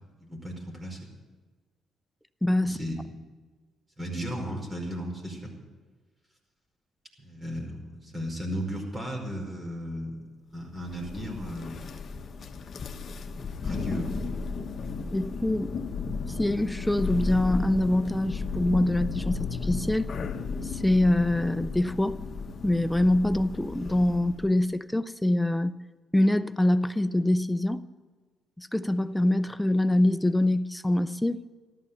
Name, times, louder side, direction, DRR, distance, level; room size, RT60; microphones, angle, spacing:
voice 1, 0.2-1.1 2.6-3.0 4.0-5.5 7.2-10.2 10.5-11.9 13.2-14.3, equal, 20° right, 1 dB, 5.0 m, -35 dB
voice 2, 2.4-2.8 15.1-15.8 16.4-20.1 20.6-22.2 22.6-25.8 26.1-27.8 28.6-31.4, left 1 dB, 5° left, 13 dB, 0.6 m, -24 dB
Thunder, 10.8-24.5, left 4 dB, 45° left, 1.2 m, -34 dB
14.0 x 13.0 x 6.9 m, 1.4 s
cardioid pair, 90°, 0 cm